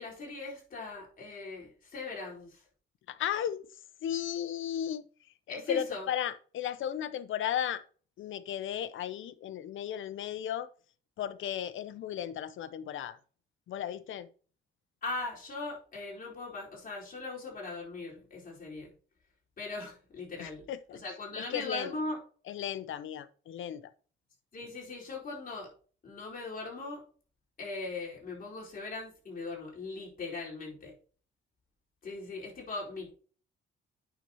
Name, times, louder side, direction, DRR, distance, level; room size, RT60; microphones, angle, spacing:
voice 1, 0.0-2.6 5.5-6.0 15.0-18.9 19.6-20.7 20.9-22.2 24.5-25.7 26.0-27.0 27.6-30.9 32.0-33.1, left 3 dB, 45° left, 4.6 m, -39 dB
voice 2, 3.1-7.8 8.2-10.7 11.2-13.2 13.7-14.3 20.4-21.0 21.4-21.9 22.5-23.9, left 10 dB, 70° left, 0.8 m, -35 dB
9.0 x 6.9 x 3.0 m
cardioid pair, 95°, 21 cm